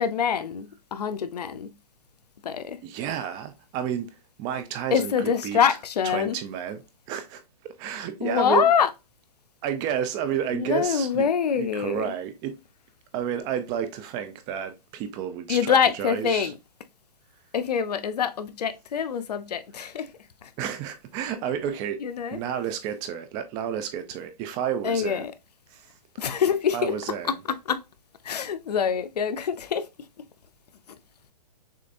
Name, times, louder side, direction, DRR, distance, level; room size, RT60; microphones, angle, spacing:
voice 1, 0.0-1.7 2.4-2.8 4.9-6.4 8.2-8.9 10.5-12.0 15.5-16.5 17.5-20.1 22.0-22.4 24.8-25.3 26.2-27.0 27.7-27.8 28.3-29.9, left 7 dB, 80° left, 0.7 m, -25 dB
voice 2, 2.8-5.6 6.0-8.7 9.6-11.3 11.5-12.6 13.1-16.5 20.6-22.0 22.3-25.2 25.7-25.9 26.7-27.4, right 9 dB, 20° right, 0.4 m, -31 dB
6.6 x 2.5 x 2.6 m
hypercardioid pair, 150°, 20 cm